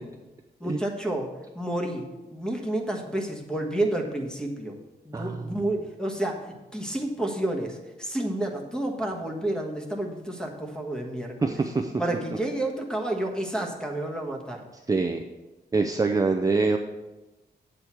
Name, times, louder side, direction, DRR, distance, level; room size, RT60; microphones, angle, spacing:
voice 1, 0.6-1.3 1.5-2.0 2.3-4.7 5.0-6.4 6.7-11.6 12.0-14.6, right 1 dB, 5° left, 1 dB, 1.3 m, -30 dB
voice 2, 5.1-5.5 11.4-11.9 14.9-15.2 15.7-16.8, right 3 dB, 20° right, 3 dB, 0.5 m, -25 dB
8.6 x 8.0 x 4.5 m, 1.1 s
wide cardioid pair, 140°, 17 cm